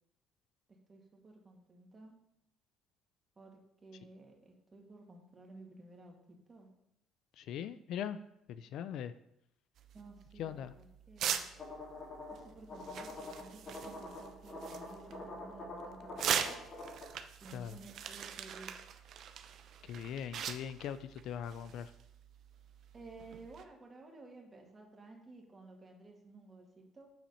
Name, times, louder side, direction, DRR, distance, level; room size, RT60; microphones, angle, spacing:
voice 1, 0.9-2.1 3.4-6.7 9.9-11.4 12.3-16.6 17.4-18.8 22.9-27.1, right 2 dB, 25° right, 0 dB, 2.2 m, -54 dB
voice 2, 7.4-8.2 8.5-9.1 10.4-10.7 17.5-17.8 19.8-21.9, left 9 dB, 70° left, 13 dB, 0.4 m, -40 dB
sound 1, 9.8-23.6, right 8 dB, 60° right, 0.7 m, -42 dB
sound 2, 11.6-17.1, left 2 dB, 45° left, 2.9 m, -46 dB
7.1 x 5.8 x 5.6 m, 0.78 s
cardioid pair, 105°, 0 cm